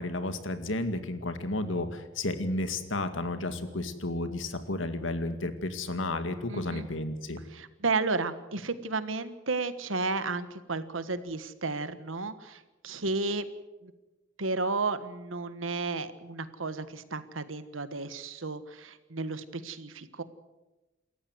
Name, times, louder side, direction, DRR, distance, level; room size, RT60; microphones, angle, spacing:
voice 1, 0.0-7.4, left 2 dB, 70° left, 9 dB, 2.2 m, -32 dB
voice 2, 6.5-6.9 7.5-13.4 13.8-13.9 14.4-20.2, right 3 dB, 90° right, 12 dB, 1.5 m, -33 dB
28.0 x 14.5 x 8.0 m, 1.1 s
head